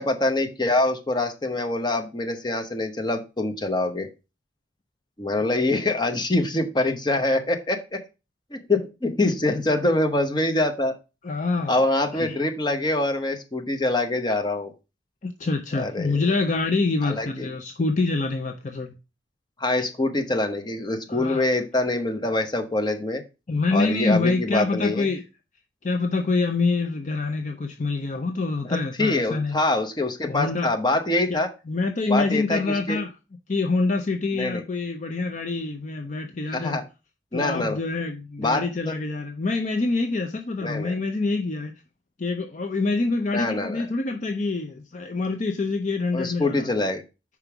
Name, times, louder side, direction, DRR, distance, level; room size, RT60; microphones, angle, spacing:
voice 1, 0.0-4.1 5.2-8.0 8.5-10.9 11.7-14.7 15.7-16.2 17.0-17.5 19.6-23.2 23.7-25.1 28.6-31.5 32.1-33.0 34.3-34.6 36.5-36.8 37.3-37.8 38.4-38.9 40.6-41.0 43.3-43.9 46.1-47.0, left 2 dB, 25° left, 0.9 m, -25 dB
voice 2, 11.2-11.8 12.1-12.4 15.2-18.9 21.1-21.5 23.5-25.2 25.8-29.6 30.3-30.7 31.3-31.4 31.7-33.1 33.5-36.8 37.3-41.7 42.2-46.7, left 3 dB, 40° left, 0.6 m, -26 dB
5.2 x 4.7 x 5.9 m
head